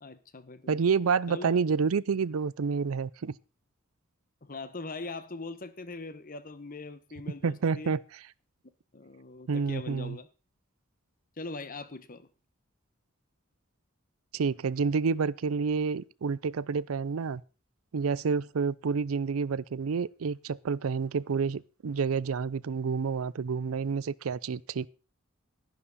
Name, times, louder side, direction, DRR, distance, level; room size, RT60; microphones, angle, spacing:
voice 1, 0.0-0.8 1.3-1.5 4.4-7.9 8.9-10.3 11.4-12.3, left 3 dB, 40° left, 1.2 m, -41 dB
voice 2, 0.7-3.4 7.4-8.0 9.5-10.2 14.3-17.4 17.9-24.9, right 5 dB, 80° right, 0.5 m, -29 dB
12.0 x 11.0 x 4.1 m
head